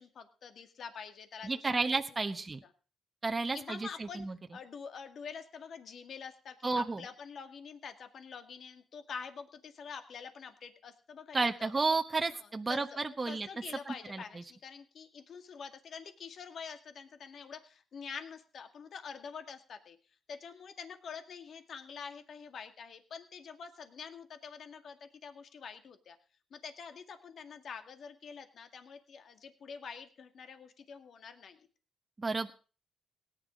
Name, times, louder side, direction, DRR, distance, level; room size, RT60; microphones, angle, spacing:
voice 1, 0.0-1.8 2.6-2.7 3.5-4.3 4.5-11.7 12.3-20.0 20.3-26.2 26.5-31.7, left 6 dB, 60° left, 7 dB, 2.0 m, -46 dB
voice 2, 1.4-2.6 3.2-4.3 6.6-7.0 11.3-13.5 13.9-14.2 32.2-32.5, right 3 dB, 25° right, 6 dB, 1.0 m, -32 dB
17.5 x 10.0 x 5.2 m, 0.38 s
cardioid pair, 90°, 0 cm